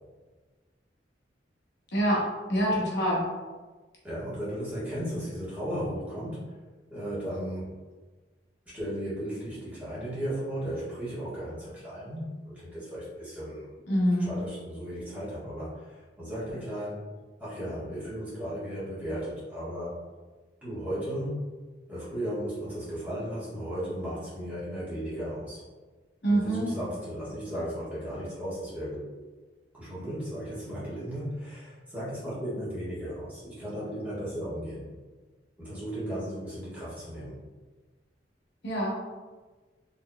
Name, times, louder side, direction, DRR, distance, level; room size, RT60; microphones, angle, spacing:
voice 1, 1.9-2.2 2.5-3.2 13.9-14.3 26.2-26.7 38.6-39.0, right 1 dB, 65° left, -4 dB, 0.9 m, -25 dB
voice 2, 4.0-6.6 6.9-7.7 8.7-13.7 14.2-17.0 17.4-20.0 20.6-21.4 21.9-25.6 26.3-29.1 29.7-34.9 35.6-37.4, equal, 10° right, -11 dB, 1.4 m, -35 dB
4.0 x 3.1 x 2.3 m, 1.3 s
head